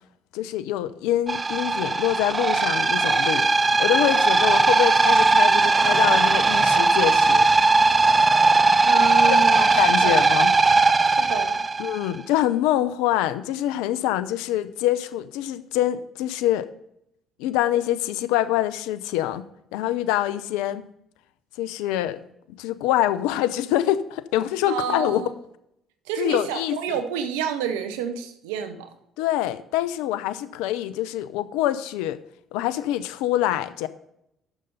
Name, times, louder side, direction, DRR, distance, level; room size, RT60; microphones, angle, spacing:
voice 1, 0.3-7.5 9.2-10.5 11.8-16.7 17.4-19.4 19.7-20.8 21.6-22.2 22.5-25.2 26.2-27.0 29.2-32.2 32.5-33.9, left 13 dB, 75° left, 0.5 m, -25 dB
sound 1, 1.3-12.1, right 3 dB, 30° right, 0.6 m, -19 dB
voice 2, 8.8-10.2 11.0-11.6 24.7-25.3 26.1-28.9, right 7 dB, 80° right, 0.8 m, -29 dB
9.8 x 6.8 x 5.3 m
hypercardioid pair, 55°, 0 cm